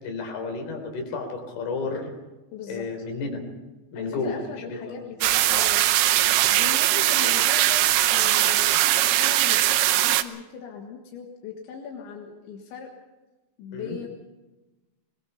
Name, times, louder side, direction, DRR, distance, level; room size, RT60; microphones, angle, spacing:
voice 1, 0.0-2.1 2.7-3.4 3.9-4.4 4.7-4.9 5.3-5.4 6.2-6.3 7.1-7.3 8.6-8.8 13.7-14.0, left 4 dB, 60° left, 4 dB, 5.7 m, -32 dB
voice 2, 2.5-2.9 3.9-5.8 6.1-12.9 13.6-14.1, left 6 dB, 85° left, 1 dB, 4.1 m, -39 dB
sound 1, 5.2-10.2, right 14 dB, 75° right, 2.5 m, -20 dB
22.5 x 21.5 x 5.6 m, 1.1 s
omnidirectional pair, 5.2 m